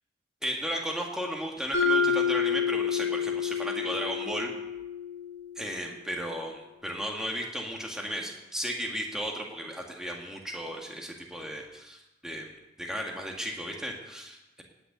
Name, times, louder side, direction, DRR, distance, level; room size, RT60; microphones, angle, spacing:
voice 1, 0.4-4.5 5.6-12.5 12.8-14.6, equal, 5° right, 0 dB, 1.9 m, -35 dB
Mallet percussion, 1.7-5.8, left 6 dB, 70° left, 1.9 m, -28 dB
17.0 x 6.7 x 8.9 m, 1.0 s
head